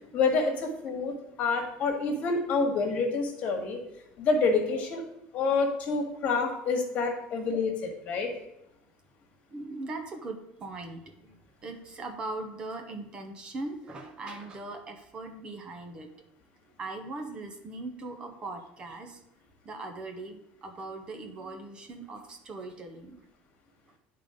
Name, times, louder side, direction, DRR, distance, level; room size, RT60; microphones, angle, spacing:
voice 1, 0.1-1.1 1.4-3.8 4.2-5.0 5.3-8.3, left 4 dB, 45° left, 3 dB, 1.6 m, -27 dB
voice 2, 9.5-16.1 16.8-19.2 19.6-23.2, right 2 dB, 25° right, 5 dB, 0.8 m, -40 dB
10.0 x 3.8 x 5.0 m, 0.86 s
cardioid pair, 155°, 4 cm